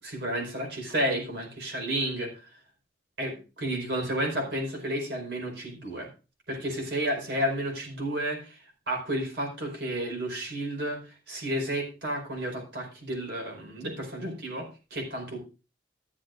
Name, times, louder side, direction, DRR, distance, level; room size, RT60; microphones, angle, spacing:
voice 1, 0.0-2.4 3.2-6.1 6.5-15.4, right 1 dB, 60° right, 0 dB, 4.9 m, -32 dB
13.5 x 11.5 x 2.6 m, 0.31 s
head